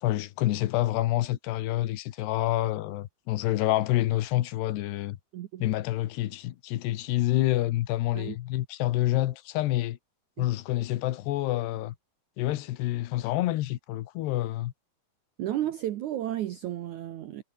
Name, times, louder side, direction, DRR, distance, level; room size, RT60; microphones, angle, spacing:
voice 1, 0.0-5.2 5.6-10.0 10.4-11.9 12.4-14.7, left 15 dB, 80° left, 3.2 m, -28 dB
voice 2, 5.3-5.6 8.1-8.4 10.4-10.5 15.4-17.4, right 12 dB, 75° right, 1.8 m, -33 dB
omnidirectional pair, 4.8 m